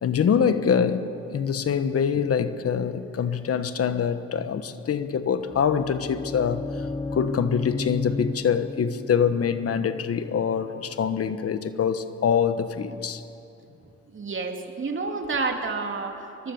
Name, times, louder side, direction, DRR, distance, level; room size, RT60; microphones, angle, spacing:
voice 1, 0.0-6.9 7.1-13.2, left 7 dB, 50° left, 11 dB, 1.2 m, -25 dB
sound 1, 5.4-11.1, left 3 dB, 15° left, 1.0 m, -34 dB
voice 2, 14.1-16.5, right 4 dB, 40° right, 3 dB, 2.9 m, -30 dB
23.5 x 22.5 x 7.2 m, 2.7 s
cardioid pair, 90°, 30 cm